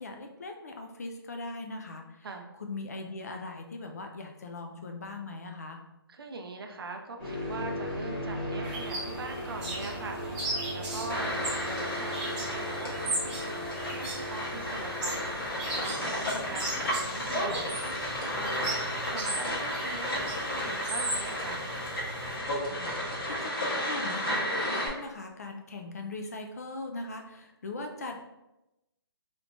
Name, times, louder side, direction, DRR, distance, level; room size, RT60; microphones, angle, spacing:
voice 1, 0.0-2.3 2.6-5.8 22.7-28.2, left 2 dB, 40° left, 4 dB, 0.4 m, -40 dB
voice 2, 6.1-15.5 15.8-16.7 17.0-21.7, right 3 dB, 65° right, 4 dB, 0.6 m, -42 dB
sound 1, 7.2-23.4, equal, 10° left, 1.4 m, -39 dB
sound 2, 8.6-22.4, right 1 dB, 20° right, 0.9 m, -38 dB
sound 3, 11.1-24.9, equal, 65° left, 1.4 m, -33 dB
3.3 x 3.0 x 2.6 m, 0.93 s
hypercardioid pair, 170°, 13 cm